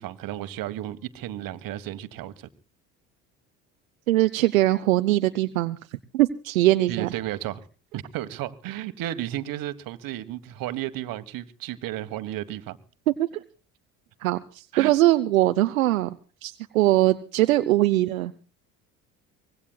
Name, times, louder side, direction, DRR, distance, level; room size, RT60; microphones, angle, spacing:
voice 1, 0.0-2.5 6.9-7.6 7.9-12.8 14.7-14.9, right 13 dB, 55° right, 1.5 m, -33 dB
voice 2, 4.1-5.8 6.1-7.1 13.2-13.3 14.2-16.2 16.4-18.3, right 16 dB, 80° right, 0.7 m, -21 dB
24.5 x 20.5 x 2.3 m
hypercardioid pair, 60°, 40 cm